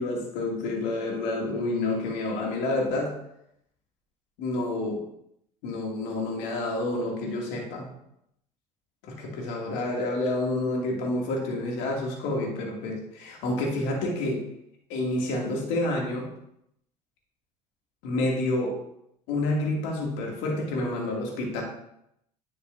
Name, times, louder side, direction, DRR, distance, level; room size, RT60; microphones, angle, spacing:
voice 1, 0.0-3.1 4.4-5.0 5.6-7.9 9.0-14.4 14.9-16.3 18.0-18.7 19.3-21.6, left 2 dB, 65° left, 0 dB, 2.5 m, -29 dB
10.0 x 7.3 x 2.7 m, 0.76 s
hypercardioid pair, 70°, 20 cm